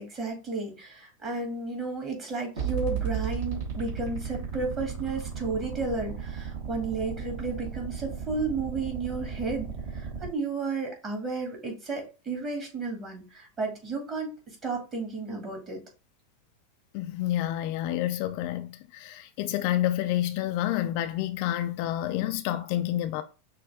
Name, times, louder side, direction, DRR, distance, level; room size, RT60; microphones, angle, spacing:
voice 1, 0.0-15.8, right 3 dB, 25° right, 2.1 m, -33 dB
sound 1, 2.6-10.3, right 7 dB, 65° right, 2.2 m, -35 dB
voice 2, 16.9-23.2, left 13 dB, 50° left, 0.4 m, -29 dB
6.1 x 2.2 x 3.5 m
figure-of-eight pair, 90°, 0 cm